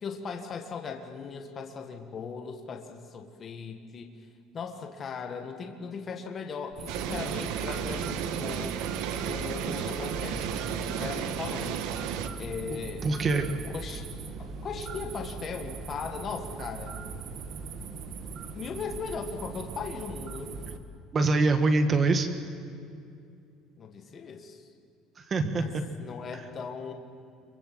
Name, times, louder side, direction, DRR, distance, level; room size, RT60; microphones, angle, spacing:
voice 1, 0.0-4.1 4.5-8.8 9.2-11.8 12.4-14.1 14.6-17.0 18.5-20.5 23.8-24.7 25.5-25.7 26.0-26.9, left 5 dB, 25° left, 4 dB, 1.7 m, -38 dB
sound 1, 6.7-20.8, right 4 dB, 40° right, 1.6 m, -40 dB
sound 2, 6.9-12.3, right 9 dB, 65° right, 1.5 m, -33 dB
voice 2, 12.7-13.5 21.1-22.3 25.2-25.8 26.3-26.4, right 3 dB, 25° right, 9 dB, 1.4 m, -25 dB
26.5 x 23.5 x 7.8 m, 2.5 s
cardioid pair, 175°, 0 cm